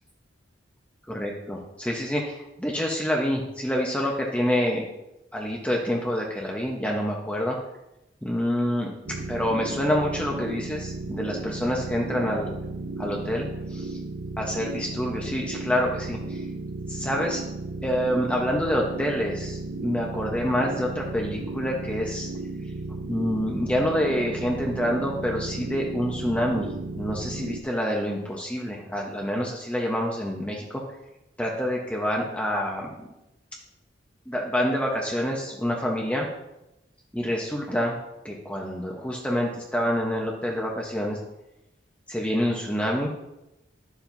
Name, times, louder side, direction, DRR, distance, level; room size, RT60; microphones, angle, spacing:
voice 1, 1.1-4.8 5.3-7.6 8.2-8.9 9.3-12.6 13.0-14.0 14.4-16.4 16.9-17.4 17.8-22.3 23.0-30.8 31.4-32.9 34.3-36.3 37.1-38.0 38.2-41.2 42.1-43.1, equal, 5° left, -1 dB, 1.0 m, -27 dB
sound 1, 9.1-27.6, right 3 dB, 65° right, 0.7 m, -34 dB
11.0 x 7.3 x 2.7 m, 0.89 s
head